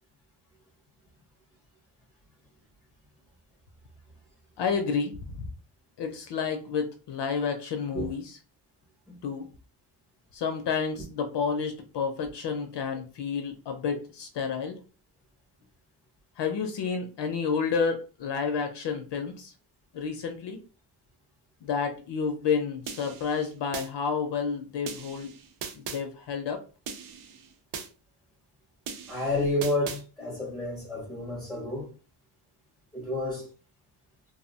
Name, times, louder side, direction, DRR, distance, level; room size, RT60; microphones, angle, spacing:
voice 1, 4.6-5.5 6.0-8.4 9.2-9.5 10.3-14.8 16.4-19.5 19.9-20.6 21.6-25.3 25.7-26.6, left 6 dB, 60° left, 0.5 m, -30 dB
sound 1, 22.9-23.9 24.9-26.0 26.9-27.9 28.9-30.0, right 6 dB, 75° right, 0.6 m, -39 dB
voice 2, 29.1-31.9 32.9-33.5, left 1 dB, ahead, 0.5 m, -30 dB
2.7 x 2.0 x 2.7 m
cardioid pair, 125°, 50 cm